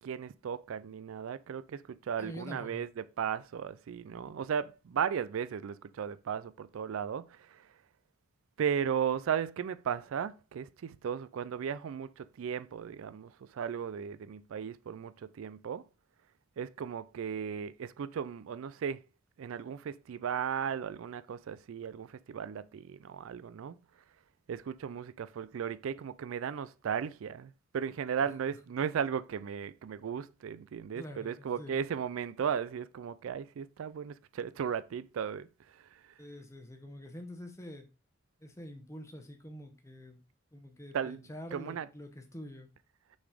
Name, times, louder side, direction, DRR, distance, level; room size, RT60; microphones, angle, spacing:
voice 1, 0.0-7.7 8.6-15.8 16.6-19.0 19.4-23.8 24.5-35.5 35.7-36.1 40.9-41.2 41.5-41.9, right 7 dB, 70° right, 0.3 m, -36 dB
voice 2, 2.2-2.8 30.9-31.8 36.2-37.9 38.4-40.2 40.5-42.7, left 1 dB, 15° left, 0.9 m, -46 dB
6.0 x 4.1 x 4.9 m
head